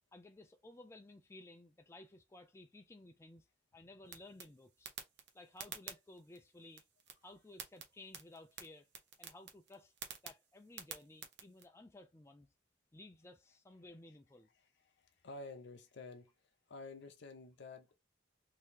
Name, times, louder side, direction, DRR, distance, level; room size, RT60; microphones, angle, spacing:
voice 1, 0.1-3.5 3.7-4.9 5.3-6.8 7.2-8.9 9.2-9.9 10.2-12.5 12.9-14.5, left 2 dB, 15° left, 0.3 m, -56 dB
sound 1, 4.1-11.6, right 7 dB, 60° right, 0.8 m, -52 dB
voice 2, 15.0-16.3 16.7-17.9, left 3 dB, 60° left, 0.6 m, -50 dB
3.0 x 2.7 x 3.4 m
head